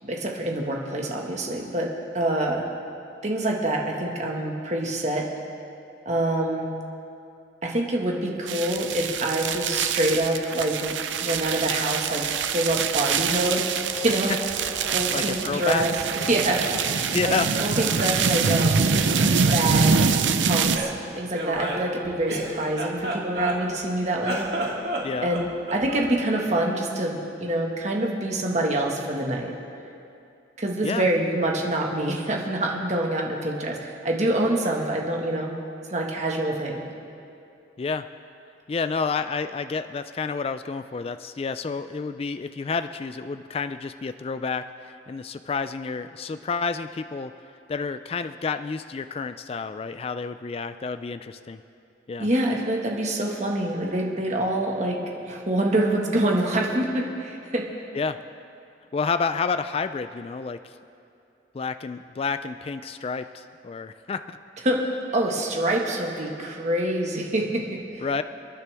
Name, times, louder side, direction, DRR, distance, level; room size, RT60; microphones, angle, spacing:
voice 1, 0.0-2.7 3.2-5.3 6.0-6.7 7.6-10.9 11.2-13.7 13.9-14.3 14.9-15.9 16.3-16.6 17.2-18.8 19.2-20.0 20.4-24.4 25.2-29.5 30.6-35.5 35.9-36.8 52.2-55.0 55.2-57.6 64.6-64.9 65.1-67.8, right 1 dB, 40° right, 0 dB, 1.6 m, -26 dB
sound 1, 8.5-20.8, right 5 dB, 90° right, 0.7 m, -25 dB
sound 2, 13.2-20.9, equal, 5° left, 2.6 m, -43 dB
Laughter, 14.5-16.8 17.1-18.6 18.9-20.1 20.7-23.8 24.2-26.1, right 1 dB, 60° right, 2.0 m, -33 dB
voice 2, 15.1-15.8 17.1-17.5 25.0-25.3 30.8-31.1 37.8-38.1 38.7-47.3 47.7-51.6 52.1-52.3 57.9-58.2 58.9-60.7 61.5-64.4 68.0-68.2, left 5 dB, 30° left, 11 dB, 0.3 m, -29 dB
30.0 x 10.0 x 3.5 m, 2.6 s
head